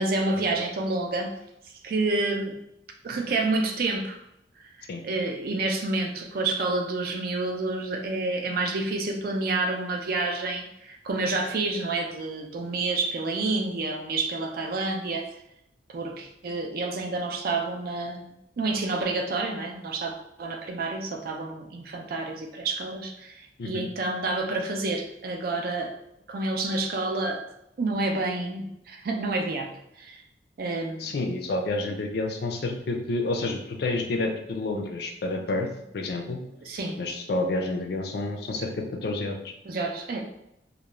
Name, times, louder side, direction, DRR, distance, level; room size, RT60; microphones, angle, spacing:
voice 1, 0.0-1.3 1.8-2.6 3.0-4.2 5.0-15.3 15.9-20.1 20.4-25.9 26.3-27.4 27.8-29.7 30.0-30.2 30.6-31.1 36.7-37.0 39.6-40.2, right 2 dB, 55° right, 3 dB, 0.4 m, -29 dB
voice 2, 31.0-35.7 35.9-36.4 37.0-38.7 39.0-39.5, left 2 dB, 60° left, 3 dB, 0.4 m, -29 dB
2.4 x 2.0 x 3.0 m, 0.81 s
head